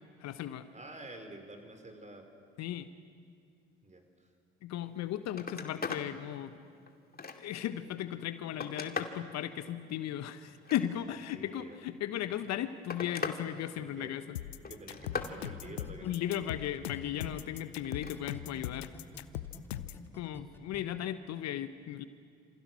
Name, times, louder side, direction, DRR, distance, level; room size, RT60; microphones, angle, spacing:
voice 1, 0.2-0.7 2.6-2.9 4.6-6.5 7.3-14.4 16.0-18.9 19.9-22.0, left 11 dB, 55° left, 12 dB, 1.2 m, -36 dB
voice 2, 0.7-2.3 3.8-4.3 11.3-11.8 13.8-14.1 14.5-16.7, right 2 dB, 20° right, 5 dB, 5.2 m, -49 dB
Telephone, 4.9-5.0 5.3-6.1 6.6-7.7 8.2-9.2 10.5-11.3 12.3-13.4 13.8-14.2 14.6-15.4 17.8-18.2 19.6-19.7, left 5 dB, 30° left, 2.4 m, -40 dB
sound 1, 14.4-20.0, left 14 dB, 80° left, 0.8 m, -40 dB
sound 2, 15.0-17.6 17.9-20.8, left 2 dB, 5° left, 3.4 m, -49 dB
27.5 x 27.0 x 6.3 m, 2.3 s
figure-of-eight pair, 55°, 32 cm